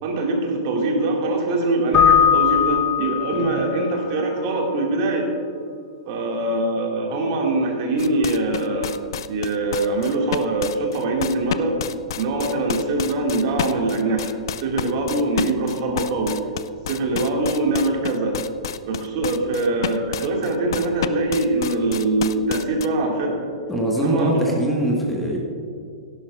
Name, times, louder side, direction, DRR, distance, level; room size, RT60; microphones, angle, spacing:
voice 1, 0.0-5.3 6.1-9.0 9.3-11.8 12.2-14.3 14.6-16.4 16.9-18.4 18.8-23.5 23.9-24.6, right 2 dB, 45° right, 0 dB, 2.2 m, -23 dB
Keyboard (musical), 1.9-3.7, left 9 dB, 30° left, 1.0 m, -18 dB
sound 1, 8.0-22.9, left 10 dB, 55° left, 0.4 m, -30 dB
voice 2, 23.7-25.4, right 1 dB, 5° left, -2 dB, 1.6 m, -22 dB
17.5 x 11.0 x 2.5 m, 2.4 s
figure-of-eight pair, 105°, 3 cm